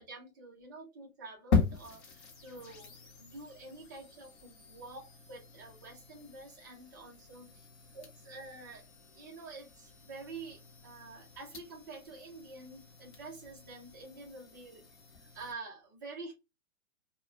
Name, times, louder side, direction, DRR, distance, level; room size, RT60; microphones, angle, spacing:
voice 1, 0.0-7.7 7.9-8.8 9.1-14.9 15.3-16.3, right 3 dB, 15° right, 0.3 m, -48 dB
sound 1, 1.5-15.5, left 4 dB, 35° left, 0.8 m, -39 dB
2.2 x 2.1 x 3.6 m
hypercardioid pair, 130°, 41 cm